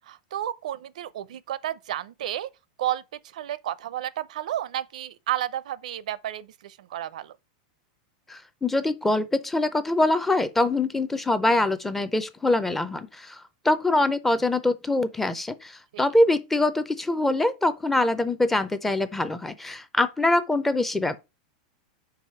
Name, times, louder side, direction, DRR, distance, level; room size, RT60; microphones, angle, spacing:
voice 1, 0.1-2.5 2.8-3.0 3.3-7.3 15.9-16.0, right 12 dB, 80° right, 0.6 m, -32 dB
voice 2, 8.3-21.2, left 2 dB, 5° left, 0.5 m, -24 dB
5.2 x 4.8 x 5.6 m
supercardioid pair, 170°, 4 cm